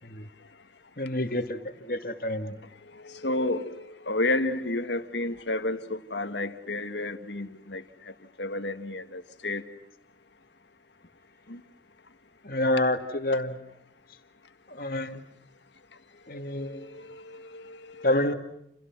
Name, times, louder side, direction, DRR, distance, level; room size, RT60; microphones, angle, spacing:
voice 1, 1.0-2.6 12.4-13.7 14.7-15.2 16.3-16.9 18.0-18.3, left 1 dB, 55° left, 2.2 m, -28 dB
voice 2, 3.0-7.8 8.4-9.6 11.5-11.6 16.6-18.1, left 2 dB, 90° left, 1.9 m, -31 dB
29.5 x 29.5 x 6.1 m
head